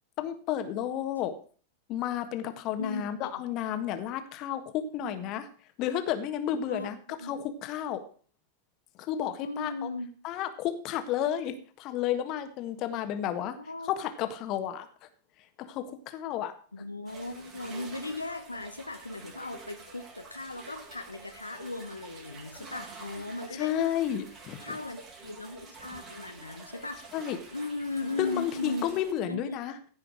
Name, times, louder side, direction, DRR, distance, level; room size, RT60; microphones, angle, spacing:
voice 1, 0.2-1.3 1.9-5.5 5.8-7.0 7.2-8.0 9.0-9.9 10.2-13.6 13.8-14.9 15.6-16.5 23.5-24.8 27.1-27.4 28.2-29.7, left 10 dB, 40° left, 9 dB, 1.5 m, -32 dB
voice 2, 2.8-3.3 5.0-5.1 6.7-6.9 7.2-7.3 9.4-10.1 13.3-13.9 16.7-23.8 24.6-27.1 27.5-28.9 29.3-29.6, left 2 dB, 85° left, 7 dB, 0.9 m, -37 dB
sound 1, 17.1-29.1, right 3 dB, 30° right, 4.1 m, -48 dB
16.0 x 5.6 x 6.2 m, 0.42 s
figure-of-eight pair, 90°, 0 cm